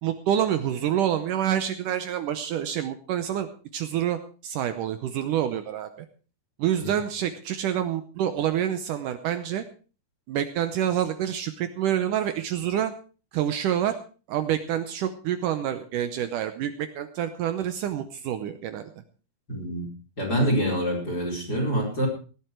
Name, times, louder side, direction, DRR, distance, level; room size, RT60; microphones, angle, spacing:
voice 1, 0.0-6.1 6.6-9.6 10.3-12.9 13.3-14.0 14.3-18.9, right 10 dB, 70° right, 9 dB, 2.1 m, -27 dB
voice 2, 19.5-19.9 20.2-22.1, equal, 25° left, -1 dB, 4.9 m, -26 dB
17.0 x 12.0 x 4.6 m, 0.37 s
omnidirectional pair, 4.3 m